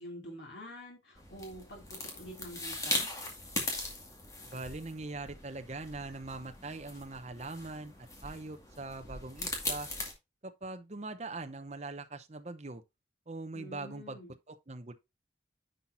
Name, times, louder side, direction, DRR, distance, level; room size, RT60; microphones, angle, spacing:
voice 1, 0.0-3.1 13.5-14.3, equal, 75° left, 2.8 m, -47 dB
sound 1, 1.1-10.1, left 2 dB, 20° left, 2.0 m, -39 dB
voice 2, 4.4-7.9 8.2-9.9 10.4-12.8 13.3-14.2 14.5-14.9, right 3 dB, 35° right, 0.8 m, -42 dB
10.0 x 5.8 x 2.6 m
head